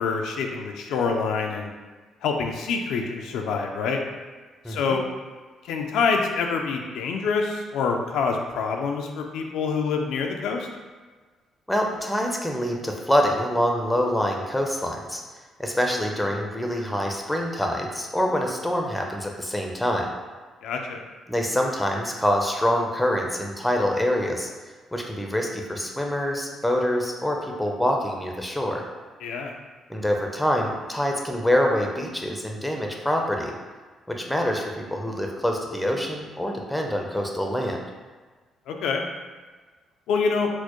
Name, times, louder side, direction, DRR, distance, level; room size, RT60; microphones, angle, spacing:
voice 1, 0.0-1.7 2.2-4.0 4.7-5.0 5.6-10.7 20.6-21.0 29.2-29.5 38.7-39.0 40.1-40.5, left 5 dB, 85° left, 2 dB, 0.3 m, -26 dB
voice 2, 4.6-5.0 11.7-15.2 15.6-20.1 21.3-24.5 24.9-28.8 29.9-33.5 34.1-37.8, equal, 5° left, 1 dB, 0.5 m, -25 dB
4.3 x 2.1 x 2.9 m, 1.4 s
cardioid pair, 80°, 0 cm